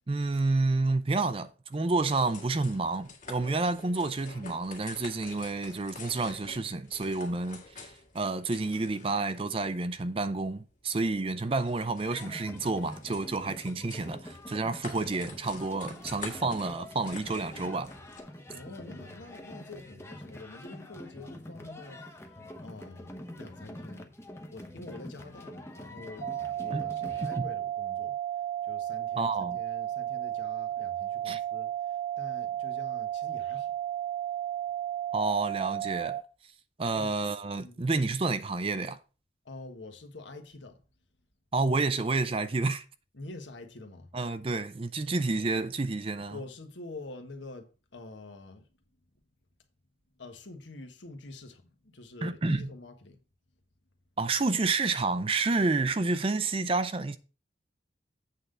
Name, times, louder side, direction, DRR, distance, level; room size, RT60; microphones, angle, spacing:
voice 1, 0.1-17.9 26.7-26.8 27.2-27.5 29.2-29.6 31.3-31.4 35.1-36.2 36.8-39.0 41.5-42.8 44.1-46.4 52.2-52.7 54.2-57.2, right 3 dB, 30° right, 0.5 m, -29 dB
sound 1, 1.7-18.2, left 4 dB, 45° left, 1.8 m, -48 dB
sound 2, 12.0-27.4, left 1 dB, 15° left, 0.8 m, -45 dB
voice 2, 18.5-24.1 24.5-28.2 28.6-33.7 36.9-37.2 37.6-37.9 39.4-40.8 43.1-44.1 45.0-45.1 46.3-48.7 50.1-53.2, left 2 dB, 75° left, 1.3 m, -46 dB
sound 3, 26.2-36.2, right 12 dB, 50° right, 1.2 m, -33 dB
8.2 x 3.8 x 6.5 m
head